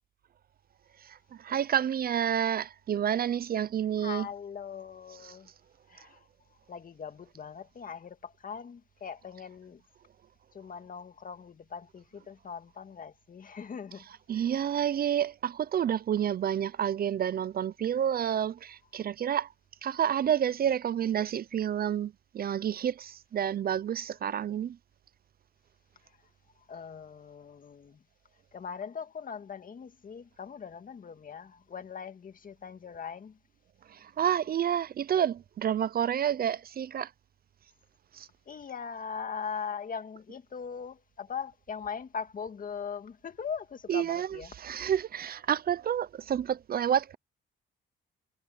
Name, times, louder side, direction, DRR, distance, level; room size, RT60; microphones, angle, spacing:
voice 1, 1.0-4.3 5.2-5.4 14.3-19.5 19.8-24.8 33.9-37.1 38.1-38.3 43.9-47.2, right 9 dB, 50° right, 0.6 m, -29 dB
voice 2, 4.0-5.5 5.9-6.2 6.7-9.8 10.5-14.1 14.3-14.5 26.7-28.0 28.5-33.4 38.5-44.5, left 6 dB, 45° left, 2.0 m, -40 dB
cardioid pair, 90°, 20 cm